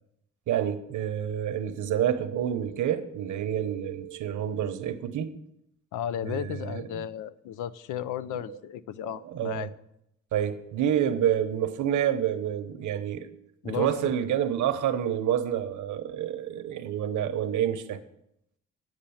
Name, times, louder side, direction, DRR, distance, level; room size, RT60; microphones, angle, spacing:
voice 1, 0.5-5.3 6.2-7.0 8.5-8.6 9.0-9.7 10.3-13.3 13.6-18.0, right 10 dB, 75° right, 10 dB, 1.0 m, -28 dB
voice 2, 5.9-9.7 13.6-14.1, left 10 dB, 85° left, 15 dB, 0.6 m, -34 dB
8.9 x 6.5 x 7.1 m, 0.78 s
cardioid pair, 90°, 30 cm